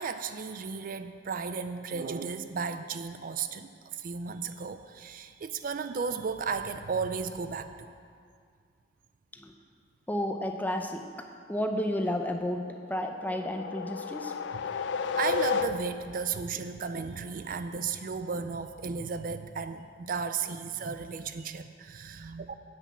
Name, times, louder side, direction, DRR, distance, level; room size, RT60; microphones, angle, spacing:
voice 1, 0.0-7.9 15.0-22.5, right 5 dB, 45° right, 10 dB, 0.4 m, -34 dB
voice 2, 10.1-14.4, left 1 dB, 10° left, 4 dB, 0.6 m, -32 dB
sound 1, 12.9-16.2, left 5 dB, 65° left, 0.4 m, -32 dB
9.8 x 6.1 x 8.3 m, 2.2 s
head